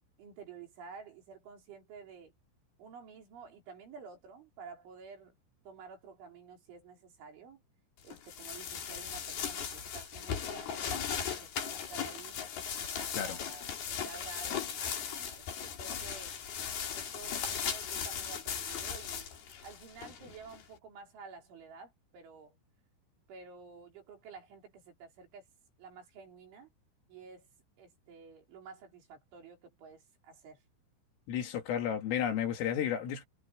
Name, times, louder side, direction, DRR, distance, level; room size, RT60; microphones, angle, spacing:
voice 1, 0.2-2.3 2.8-5.4 5.7-7.6 8.0-12.4 13.0-16.4 16.9-19.3 19.6-22.6 23.3-25.5 25.8-26.7 27.1-27.5 27.8-30.6, right 5 dB, 70° right, 6.9 m, -51 dB
sound 1, 8.1-20.6, left 7 dB, 55° left, 4.7 m, -38 dB
voice 2, 31.3-33.2, left 9 dB, 80° left, 5.3 m, -32 dB
omnidirectional pair, 5.7 m